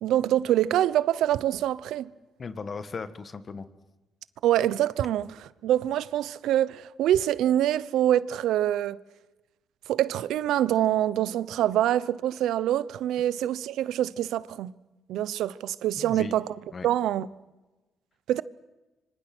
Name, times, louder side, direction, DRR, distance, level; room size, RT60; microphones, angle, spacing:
voice 1, 0.0-2.1 4.4-9.0 9.9-14.7 15.1-16.5 16.8-17.3 18.3-18.4, right 12 dB, 85° right, 0.8 m, -25 dB
voice 2, 2.4-3.7 16.0-16.4 16.7-16.9, left 5 dB, 40° left, 1.8 m, -37 dB
26.0 x 25.5 x 6.2 m
cardioid pair, 90°, 0 cm